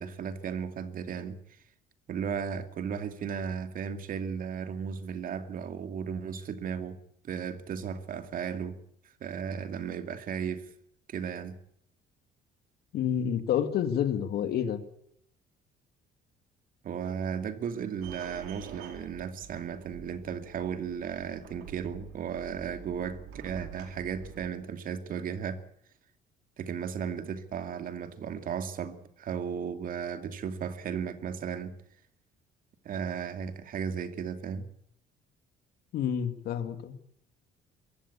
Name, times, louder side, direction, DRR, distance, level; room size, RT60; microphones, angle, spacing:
voice 1, 0.0-1.6 2.1-7.0 7.2-8.8 9.2-10.7 11.1-11.6 16.8-25.6 26.6-31.8 32.8-34.7, right 7 dB, 55° right, 2.4 m, -35 dB
voice 2, 12.9-14.8 35.9-37.0, left 9 dB, 70° left, 2.3 m, -29 dB
sound 1, 18.0-24.5, right 7 dB, 85° right, 4.4 m, -47 dB
22.5 x 16.0 x 8.5 m
cardioid pair, 110°, 17 cm